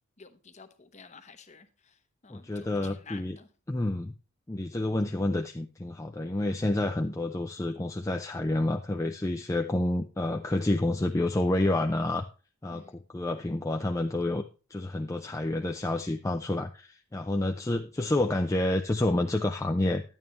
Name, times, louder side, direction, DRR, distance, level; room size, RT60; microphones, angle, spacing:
voice 1, 0.2-3.5 12.7-13.0, left 5 dB, 30° left, 0.9 m, -51 dB
voice 2, 2.3-3.4 3.7-4.1 4.5-12.2 12.6-14.4 14.7-20.0, left 1 dB, 15° left, 0.4 m, -29 dB
10.5 x 9.0 x 3.1 m
head